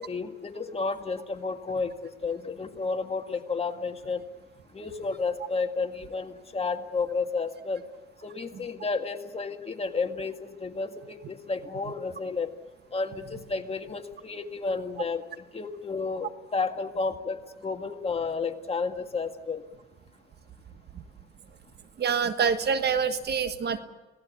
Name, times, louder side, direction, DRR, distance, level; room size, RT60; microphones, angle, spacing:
voice 1, 0.0-4.2 4.7-7.8 8.2-12.5 12.9-19.6, left 4 dB, 30° left, 5 dB, 2.0 m, -32 dB
voice 2, 22.0-23.8, right 6 dB, 55° right, 9 dB, 1.5 m, -26 dB
26.0 x 17.5 x 8.5 m, 1.2 s
cardioid pair, 90°, 20 cm